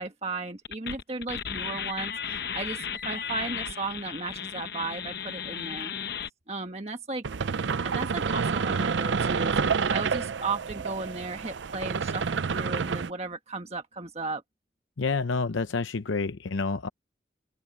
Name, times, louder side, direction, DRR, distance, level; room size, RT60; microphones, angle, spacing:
voice 1, 0.0-5.9 6.5-7.2 7.8-9.6 9.9-14.4, right 3 dB, 35° right, 1.4 m, -35 dB
sound 1, 0.6-6.3, left 7 dB, 55° left, 1.0 m, -35 dB
sound 2, 7.2-13.1, right 5 dB, 70° right, 0.5 m, -28 dB
voice 2, 15.0-16.9, left 4 dB, 90° left, 0.7 m, -28 dB
open air
head